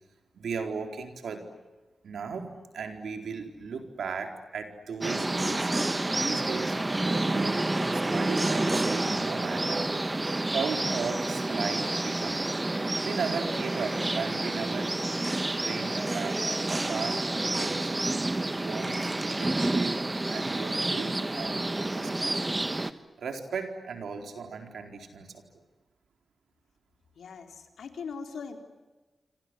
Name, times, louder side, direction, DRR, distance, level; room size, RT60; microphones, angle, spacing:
voice 1, 0.3-1.5 2.0-5.7 6.2-9.9 10.5-12.4 13.0-14.9 15.5-16.4 16.7-18.2 18.6-22.3 22.8-25.4, right 5 dB, 90° right, 5 dB, 4.2 m, -37 dB
sound 1, 5.0-22.9, right 2 dB, 25° right, 1.5 m, -29 dB
voice 2, 27.2-28.6, left 5 dB, 90° left, 5 dB, 3.9 m, -40 dB
27.5 x 27.0 x 7.9 m, 1.2 s
cardioid pair, 65°, 0 cm